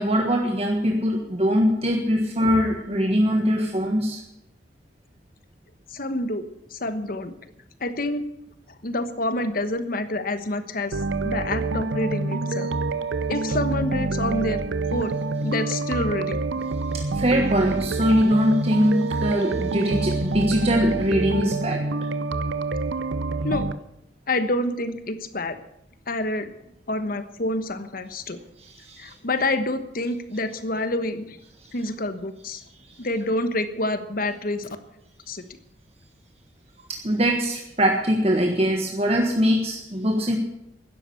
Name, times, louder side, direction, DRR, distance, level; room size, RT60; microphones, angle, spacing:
voice 1, 0.0-4.2 16.9-21.8 28.6-29.1 36.9-40.4, equal, 35° right, 2 dB, 1.5 m, -22 dB
voice 2, 5.9-6.4 6.7-7.3 7.8-8.2 8.8-12.7 13.3-14.6 14.9-15.2 15.4-16.7 23.4-23.8 24.3-25.6 26.1-26.5 26.9-28.4 29.0-31.4 31.7-32.6 33.0-34.7 35.3-35.4, left 2 dB, 50° left, 10 dB, 1.2 m, -27 dB
sound 1, 10.9-23.7, right 3 dB, 90° right, 0.7 m, -27 dB
12.0 x 11.0 x 8.4 m, 0.81 s
head